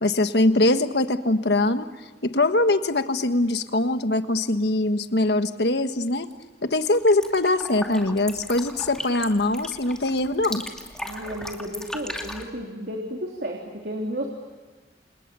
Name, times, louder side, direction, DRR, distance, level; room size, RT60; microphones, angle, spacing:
voice 1, 0.0-1.8 2.2-6.3 6.6-10.6, left 2 dB, 70° left, 9 dB, 1.5 m, -22 dB
sound 1, 6.1-6.4 6.8-12.4, left 1 dB, 5° left, 2.6 m, -37 dB
voice 2, 11.0-14.3, equal, 60° right, 0 dB, 3.4 m, -32 dB
30.0 x 28.5 x 7.0 m, 1.4 s
head